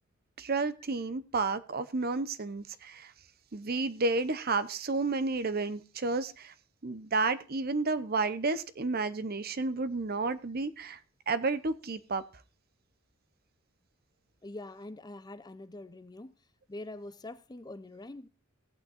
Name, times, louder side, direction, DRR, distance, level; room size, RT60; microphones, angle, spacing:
voice 1, 0.4-3.1 3.5-6.5 6.8-11.0 11.3-12.2, right 3 dB, 50° right, 0.8 m, -31 dB
voice 2, 14.4-16.3 16.7-18.3, left 2 dB, 20° left, 0.6 m, -44 dB
16.5 x 8.8 x 2.5 m
head